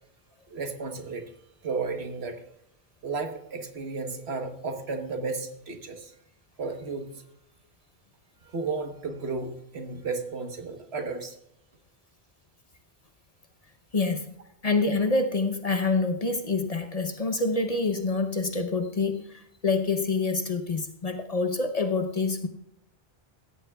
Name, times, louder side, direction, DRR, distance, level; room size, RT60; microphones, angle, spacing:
voice 1, 0.5-1.3 1.6-2.4 3.0-6.1 6.6-7.2 8.4-11.4, right 4 dB, 75° right, 6 dB, 1.4 m, -33 dB
voice 2, 13.9-14.3 14.6-22.5, left 3 dB, 40° left, 7 dB, 0.8 m, -26 dB
16.5 x 13.5 x 2.3 m, 0.79 s
omnidirectional pair, 1.1 m